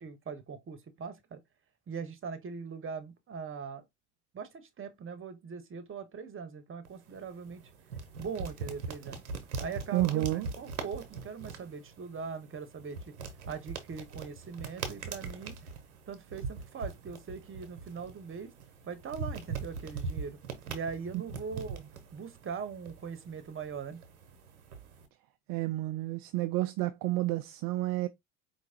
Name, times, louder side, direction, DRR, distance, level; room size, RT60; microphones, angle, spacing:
voice 1, 0.0-1.4 1.9-3.8 4.3-7.7 8.2-9.2 9.6-13.1 13.5-15.6 16.1-18.5 18.8-20.4 20.7-21.8 22.1-24.0, right 6 dB, 30° right, 1.1 m, -41 dB
sound 1, 6.8-25.1, right 4 dB, 90° right, 1.0 m, -42 dB
voice 2, 9.9-10.5 21.1-21.2 25.5-28.1, right 16 dB, 55° right, 0.5 m, -30 dB
4.6 x 3.1 x 2.8 m
hypercardioid pair, 70°, 42 cm